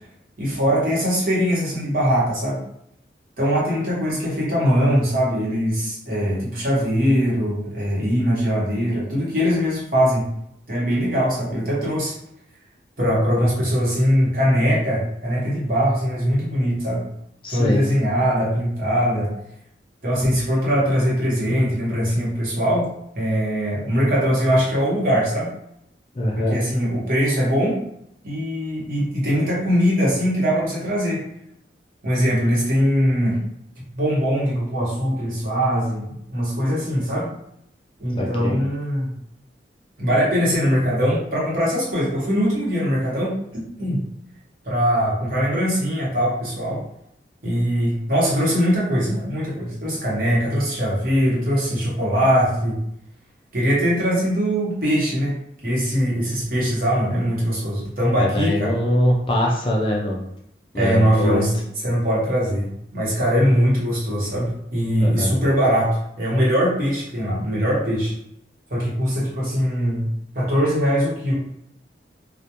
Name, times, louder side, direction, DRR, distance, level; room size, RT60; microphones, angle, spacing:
voice 1, 0.4-2.6 3.4-10.3 10.7-12.2 13.0-17.1 17.5-19.3 20.0-22.9 23.2-25.5 26.4-27.8 28.2-31.3 32.0-33.4 33.9-37.3 38.0-39.1 40.0-44.0 44.6-46.8 47.4-52.8 53.5-55.4 55.6-58.7 60.7-61.5 61.8-68.1 68.7-70.1 70.3-71.4, equal, 50° right, -6 dB, 0.9 m, -21 dB
voice 2, 17.4-17.8 26.2-26.6 38.2-38.6 49.1-49.2 58.2-60.2 60.7-61.4 65.0-65.4, left 1 dB, 30° left, -1 dB, 0.4 m, -22 dB
2.2 x 2.1 x 2.8 m, 0.75 s
head